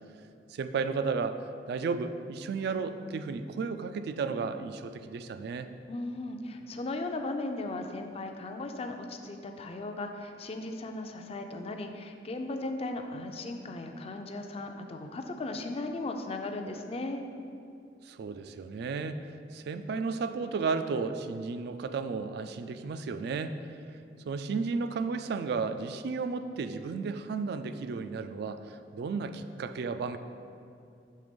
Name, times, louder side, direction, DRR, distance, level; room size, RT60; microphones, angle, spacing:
voice 1, 0.5-5.7 18.0-23.6 24.3-30.2, right 4 dB, 65° right, 10 dB, 0.3 m, -33 dB
voice 2, 5.9-17.2, left 2 dB, 35° left, 5 dB, 0.4 m, -37 dB
6.6 x 3.4 x 5.2 m, 2.6 s
head